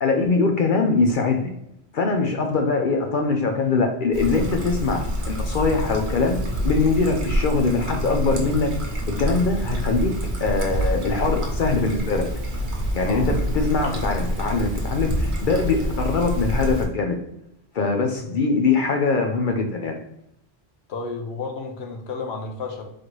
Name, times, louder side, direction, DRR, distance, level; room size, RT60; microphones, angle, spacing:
voice 1, 0.0-1.5 1.9-8.7 9.2-10.1 10.4-12.2 12.9-17.2 17.7-20.0, left 4 dB, 55° left, 3 dB, 0.7 m, -22 dB
Trickle dribble, 4.1-16.9, equal, 50° right, 0.9 m, -27 dB
voice 2, 20.9-22.8, left 4 dB, 70° left, 2 dB, 1.0 m, -31 dB
4.1 x 3.2 x 3.1 m, 0.80 s
omnidirectional pair, 1.1 m